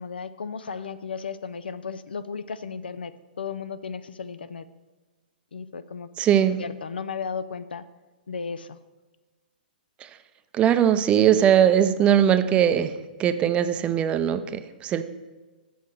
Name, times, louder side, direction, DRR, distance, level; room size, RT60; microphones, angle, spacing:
voice 1, 0.0-4.7 5.5-6.1 6.6-7.8 8.3-8.8, left 5 dB, 85° left, 13 dB, 0.5 m, -35 dB
voice 2, 6.2-6.6 10.0-10.1 10.5-12.9 13.2-15.0, right 9 dB, 20° right, 11 dB, 0.5 m, -20 dB
7.7 x 5.1 x 6.4 m, 1.3 s
hypercardioid pair, 130°, 5 cm